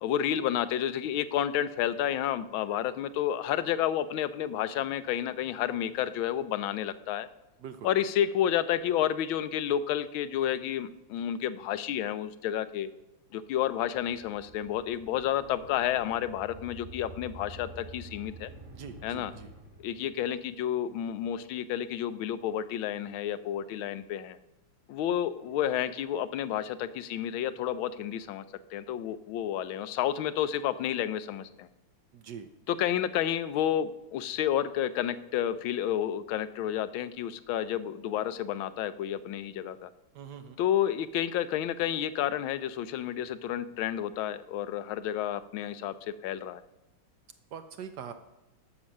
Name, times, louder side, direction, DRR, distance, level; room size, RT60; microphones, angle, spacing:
voice 1, 0.0-7.3 7.8-12.9 13.3-18.5 19.0-19.3 19.8-24.4 24.9-28.4 28.7-31.7 32.7-39.9 40.6-45.9 46.2-46.6, left 10 dB, 80° left, 13 dB, 1.4 m, -30 dB
sound 1, 13.6-20.5, right 1 dB, 40° right, 2.2 m, -49 dB
voice 2, 18.7-19.5 32.1-32.5 40.1-40.6 47.5-48.1, right 7 dB, 65° right, 9 dB, 1.2 m, -43 dB
12.5 x 6.1 x 6.4 m, 0.98 s
omnidirectional pair, 2.2 m